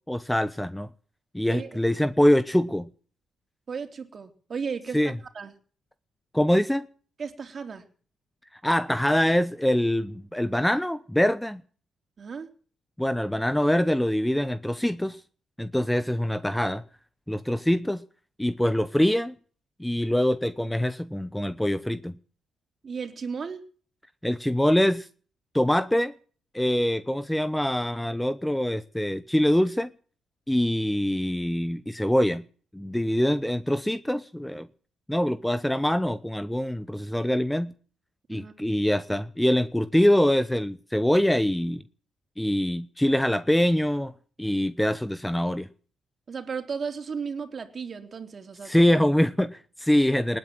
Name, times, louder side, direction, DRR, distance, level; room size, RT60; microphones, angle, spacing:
voice 1, 0.1-0.9 1.3-2.9 4.9-5.1 6.3-6.9 8.6-11.6 13.0-15.2 15.6-16.8 17.3-18.0 18.4-19.4 19.8-22.2 24.2-25.1 25.5-26.1 26.5-29.9 30.5-32.4 32.7-34.7 35.1-37.7 38.3-41.8 42.4-44.1 44.4-45.7 48.6-50.4, left 1 dB, 5° left, 0.9 m, -24 dB
voice 2, 3.7-5.5 7.2-7.8 12.2-12.5 22.8-23.6 38.3-38.5 46.3-48.8, right 5 dB, 40° right, 3.6 m, -35 dB
19.5 x 9.5 x 7.7 m
cardioid pair, 90°, 0 cm